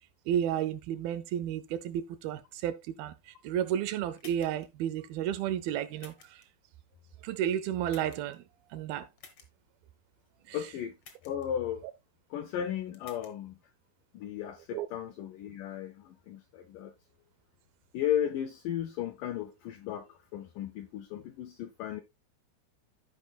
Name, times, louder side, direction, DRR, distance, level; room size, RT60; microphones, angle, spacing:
voice 1, 0.3-6.4 7.2-8.4 8.7-9.1 10.5-10.6 14.7-14.9, right 10 dB, 80° right, 2.2 m, -32 dB
sound 1, 4.2-4.7 6.0-6.5 7.9-8.4 9.2-9.5 11.0-11.5 12.9-13.3, left 5 dB, 55° left, 1.7 m, -53 dB
voice 2, 10.5-11.0 11.2-11.8 12.3-13.6 14.1-16.9 17.9-22.0, left 10 dB, 80° left, 1.9 m, -35 dB
14.5 x 5.1 x 2.3 m
omnidirectional pair, 4.5 m